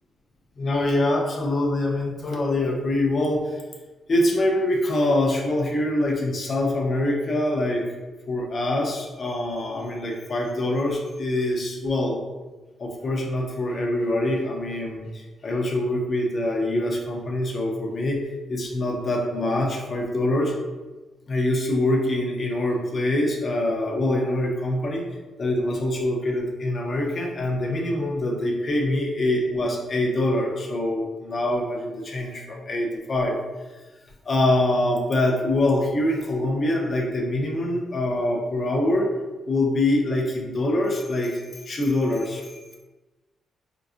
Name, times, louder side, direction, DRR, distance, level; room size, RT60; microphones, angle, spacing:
voice 1, 0.6-3.5 4.1-7.8 8.3-12.2 12.8-18.2 18.5-20.5 21.3-25.1 25.4-33.4 34.3-39.1 39.5-42.8, left 1 dB, 30° left, -1 dB, 0.4 m, -24 dB
3.8 x 2.4 x 2.4 m, 1.2 s
cardioid pair, 175°, 0 cm